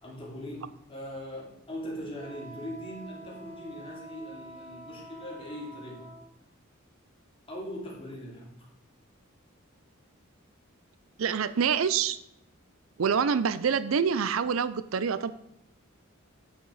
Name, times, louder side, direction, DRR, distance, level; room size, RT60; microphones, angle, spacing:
voice 1, 0.0-6.1 7.5-8.7, equal, 25° left, -3 dB, 2.8 m, -40 dB
Wind instrument woodwind instrument, 2.2-6.3, right 1 dB, 30° right, 1.5 m, -47 dB
voice 2, 11.2-12.2 13.0-15.3, right 6 dB, 75° right, 14 dB, 0.5 m, -26 dB
9.7 x 6.6 x 4.7 m, 0.79 s
head